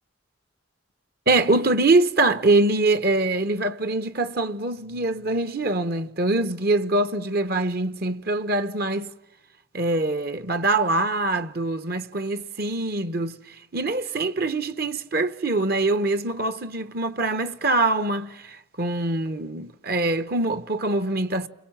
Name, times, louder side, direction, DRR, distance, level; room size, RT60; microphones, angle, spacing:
voice 1, 1.3-9.1 9.7-13.3 13.7-21.5, right 2 dB, 50° right, 1.2 m, -24 dB
29.5 x 23.0 x 8.9 m
head